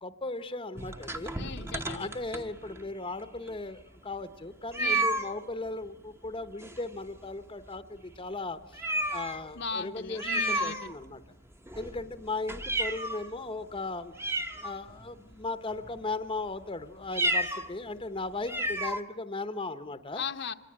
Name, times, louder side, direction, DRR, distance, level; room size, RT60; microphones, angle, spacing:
voice 1, 0.0-1.3 1.9-11.2 11.7-14.1 14.6-20.2, left 3 dB, 25° left, 11 dB, 0.9 m, -37 dB
sound 1, 0.8-2.9 3.5-3.6 3.8-3.9 4.7-5.3 6.6-7.2 7.5-7.6 8.1-8.2 8.7-9.5 10.2-11.2 11.7-13.3 13.8-13.9 14.1-15.2 15.7-16.0 17.0-17.7 18.0-18.1 18.4-19.0, right 1 dB, 10° right, 1.0 m, -31 dB
voice 2, 1.4-2.1 4.8-5.1 9.6-10.9 20.2-20.5, left 5 dB, 55° left, 7 dB, 0.9 m, -37 dB
26.0 x 20.0 x 8.7 m, 0.97 s
head